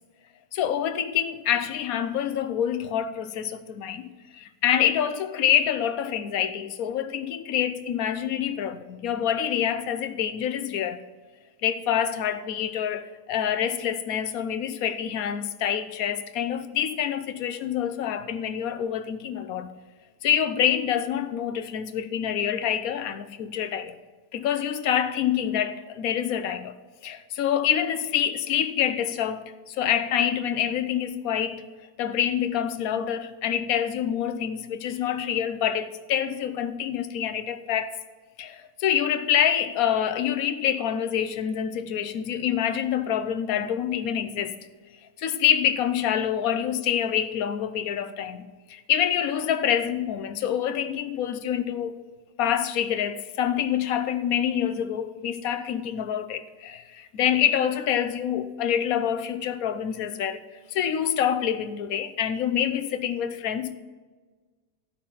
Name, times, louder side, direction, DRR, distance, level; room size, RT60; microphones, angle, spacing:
voice 1, 0.5-11.0 11.6-19.7 20.2-24.0 24.3-26.8 27.0-31.7 32.0-38.0 38.4-44.6 45.2-52.0 52.4-60.4 60.7-63.7, left 9 dB, 75° left, 1.2 m, -26 dB
14.0 x 5.8 x 5.7 m
omnidirectional pair, 1.6 m